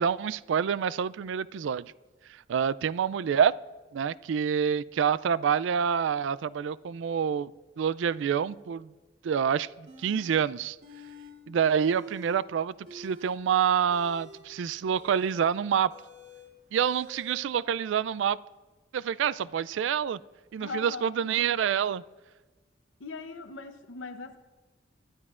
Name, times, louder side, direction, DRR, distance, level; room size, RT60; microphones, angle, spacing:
voice 1, 0.0-1.9 2.3-3.5 3.9-7.5 7.8-8.9 9.2-10.8 11.5-15.9 16.7-18.4 18.9-20.2 20.5-22.0, right 7 dB, 75° right, 19 dB, 0.3 m, -27 dB
sound 1, 9.9-10.4 10.8-11.3 11.6-12.4 12.8-17.4, right 1 dB, 60° right, 2.8 m, -48 dB
voice 2, 20.6-21.2 23.0-24.4, left 4 dB, 90° left, 8 dB, 0.7 m, -40 dB
21.5 x 12.0 x 2.5 m, 1.3 s
head